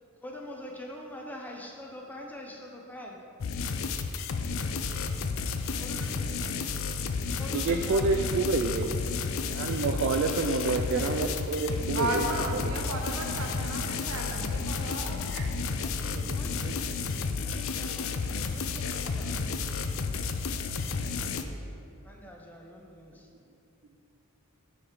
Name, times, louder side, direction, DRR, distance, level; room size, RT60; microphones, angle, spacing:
voice 1, 0.2-3.2 5.8-6.4 7.4-8.7 15.8-16.8 17.4-21.0 22.0-23.3, left 1 dB, 10° left, 0 dB, 0.6 m, -45 dB
sound 1, 3.4-21.4, left 4 dB, 65° left, 0.4 m, -32 dB
voice 2, 7.5-9.0 9.5-12.7 15.3-15.5 16.1-16.8, right 3 dB, 55° right, 4 dB, 0.3 m, -29 dB
voice 3, 11.9-15.2, right 1 dB, 75° right, 1 dB, 1.0 m, -34 dB
7.1 x 4.7 x 4.8 m, 2.7 s
head